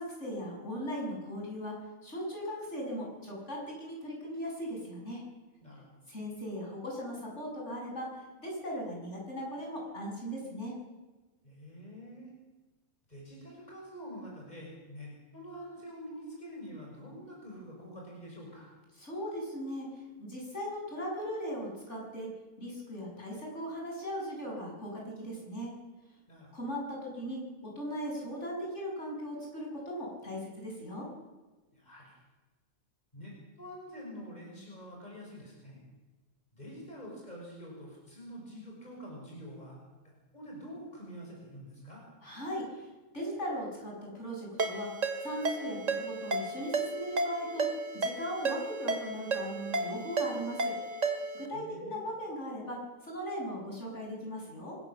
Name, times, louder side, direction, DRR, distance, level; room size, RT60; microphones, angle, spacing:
voice 1, 0.0-1.8 2.0-5.2 6.1-10.7 19.0-19.9 20.2-22.3 22.6-25.7 26.5-31.1 42.2-42.9 43.1-44.9 45.2-50.7 51.3-54.8, equal, 55° left, -2 dB, 7.7 m, -38 dB
voice 2, 5.6-6.0 11.4-12.3 13.1-18.7 26.3-26.5 31.7-32.2 33.1-35.8 36.5-39.8 40.3-42.0 51.5-52.0, equal, 30° left, -2 dB, 6.3 m, -46 dB
Ringtone, 44.6-51.5, right 3 dB, 65° right, 2.6 m, -33 dB
27.0 x 16.5 x 7.2 m, 1.2 s
omnidirectional pair, 1.4 m